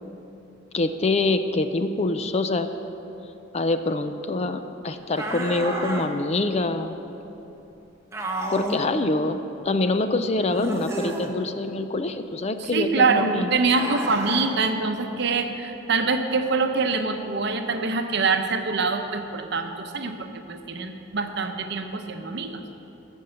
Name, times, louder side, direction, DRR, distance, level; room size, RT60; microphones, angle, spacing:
voice 1, 0.7-2.7 3.5-7.0 8.5-9.4 9.6-13.5, left 2 dB, 35° left, 9 dB, 0.5 m, -25 dB
sound 1, 5.2-6.1 8.1-8.9 10.5-11.3 13.7-14.5, right 1 dB, 15° right, 1.0 m, -31 dB
voice 2, 12.6-22.6, right 4 dB, 60° right, 6 dB, 0.8 m, -25 dB
14.5 x 5.4 x 7.8 m, 2.9 s
head